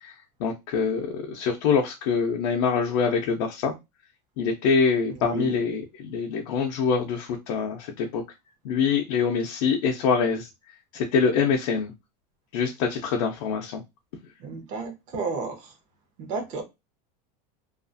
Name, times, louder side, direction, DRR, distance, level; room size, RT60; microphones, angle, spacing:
voice 1, 0.4-3.7 4.4-8.2 8.6-10.5 10.9-11.9 12.5-13.8, left 5 dB, 60° left, 0.5 m, -25 dB
voice 2, 5.2-5.6 14.4-15.7 16.2-16.6, right 4 dB, 35° right, 0.7 m, -32 dB
2.4 x 2.3 x 2.5 m
supercardioid pair, 180°, 20 cm